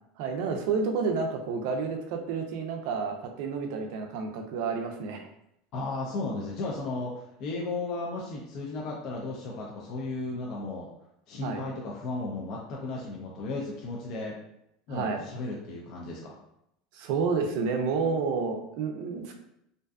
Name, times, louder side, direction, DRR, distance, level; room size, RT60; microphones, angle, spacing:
voice 1, 0.2-5.3 11.4-11.6 14.9-15.2 16.9-19.3, right 5 dB, 65° right, 4 dB, 0.4 m, -30 dB
voice 2, 5.7-10.9 11.3-14.4 14.9-16.4, left 2 dB, 45° left, -3 dB, 0.4 m, -35 dB
2.5 x 2.3 x 2.3 m, 0.79 s
supercardioid pair, 155°, 0 cm